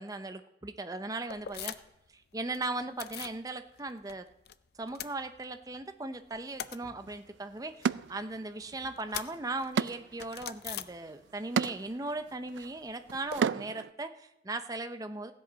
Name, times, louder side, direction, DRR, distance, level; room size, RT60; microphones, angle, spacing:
voice 1, 0.0-1.7 2.3-4.3 4.8-15.3, right 2 dB, 20° right, 8 dB, 0.5 m, -38 dB
sound 1, 1.3-2.1 2.3-3.4 3.8-4.5 4.8-5.8 6.1-11.5 11.8-13.4, left 9 dB, 55° left, 0.5 m, -44 dB
sound 2, 7.0-7.1 7.8-8.8 9.1-13.9, right 6 dB, 80° right, 0.3 m, -34 dB
16.0 x 8.0 x 5.1 m, 0.87 s
head